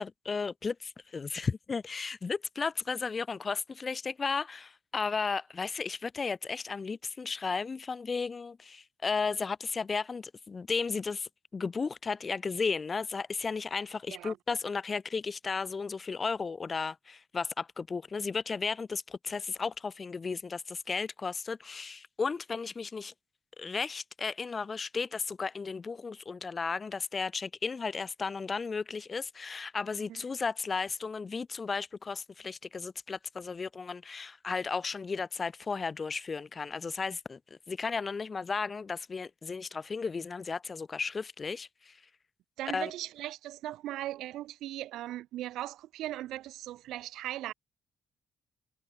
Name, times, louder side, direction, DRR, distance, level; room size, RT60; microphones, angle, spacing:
voice 1, 0.0-23.1 23.6-37.4 37.7-42.0 42.7-42.9, left 4 dB, 35° left, 0.7 m, -34 dB
voice 2, 42.6-47.5, right 14 dB, 85° right, 2.0 m, -38 dB
cardioid pair, 90°, 0 cm